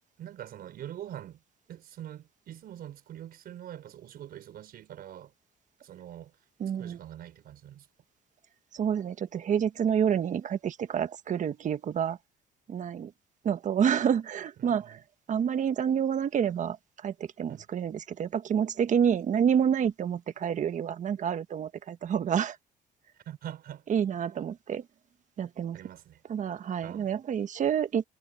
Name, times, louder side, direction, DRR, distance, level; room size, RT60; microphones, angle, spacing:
voice 1, 0.2-1.4 1.7-5.3 5.8-6.3 6.8-7.9 14.6-15.0 17.5-17.7 23.3-23.8 25.7-26.2 26.8-27.1, right 11 dB, 65° right, 5.3 m, -44 dB
voice 2, 6.6-7.0 8.7-12.2 12.7-13.1 13.4-15.0 15.3-22.6 23.9-24.8 25.4-25.8 26.3-28.1, right 8 dB, 45° right, 1.5 m, -28 dB
cardioid pair, 110°, 17 cm